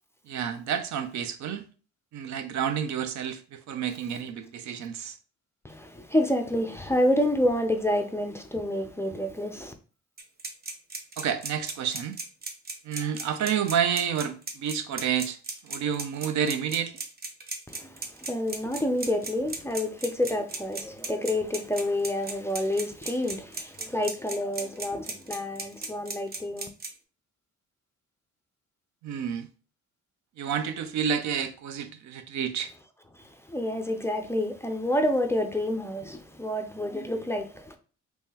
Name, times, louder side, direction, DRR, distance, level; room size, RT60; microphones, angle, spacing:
voice 1, 0.3-1.6 2.1-5.2 11.2-12.2 12.8-15.4 15.6-17.0 29.0-29.5 30.4-32.7, right 8 dB, 70° right, 0.5 m, -29 dB
voice 2, 5.6-9.7 17.7-26.7 33.1-37.8, left 1 dB, 10° left, 0.4 m, -28 dB
sound 1, 10.2-26.9, right 3 dB, 30° right, 0.8 m, -35 dB
3.6 x 3.1 x 2.8 m
cardioid pair, 90°, 30 cm